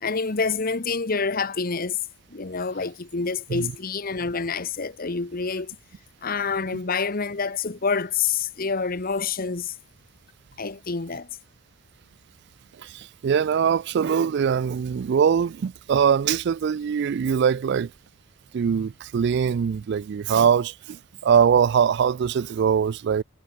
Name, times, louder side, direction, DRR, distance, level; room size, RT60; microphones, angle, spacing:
voice 1, 0.0-2.0 2.3-5.7 6.2-9.8 10.6-11.3, left 5 dB, 45° left, 1.0 m, -27 dB
voice 2, 12.8-17.9 18.5-23.2, right 7 dB, 55° right, 0.3 m, -22 dB
head